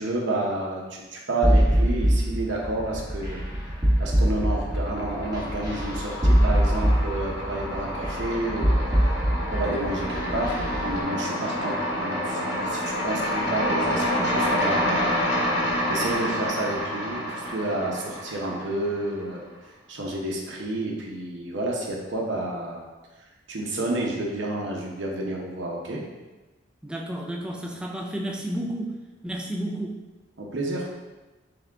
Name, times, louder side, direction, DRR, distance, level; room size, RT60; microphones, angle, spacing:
voice 1, 0.0-3.4 4.0-8.8 9.5-10.5 10.8-15.1 15.9-19.4 19.9-22.8 23.5-26.0 30.4-30.9, right 1 dB, 75° right, -2 dB, 0.8 m, -30 dB
sound 1, 1.4-10.9, equal, 20° right, 0.8 m, -23 dB
sound 2, 3.0-3.7 4.0-19.2, equal, 80° left, 1.2 m, -28 dB
voice 2, 26.8-29.0 29.2-30.0, right 1 dB, 5° right, 0 dB, 0.3 m, -31 dB
3.7 x 3.4 x 3.5 m, 1.2 s
head